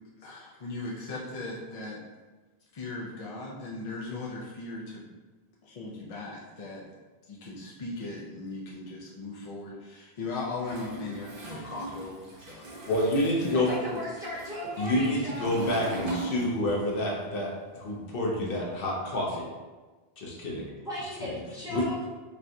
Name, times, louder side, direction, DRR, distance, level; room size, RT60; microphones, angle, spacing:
voice 1, 0.2-2.0 2.7-5.1 5.6-6.8 7.3-12.6 13.4-13.8, left 3 dB, 50° left, -5 dB, 0.4 m, -38 dB
Toilet flush, 10.6-17.0 17.3-18.9, right 3 dB, 60° right, 0.9 m, -40 dB
voice 2, 12.9-13.7 14.8-19.5 20.2-20.7 21.7-21.8, left 1 dB, 65° left, -2 dB, 0.8 m, -28 dB
voice 3, 13.7-15.5 20.8-22.1, left 1 dB, 5° right, -9 dB, 1.0 m, -37 dB
4.3 x 2.2 x 2.6 m, 1.3 s
omnidirectional pair, 1.1 m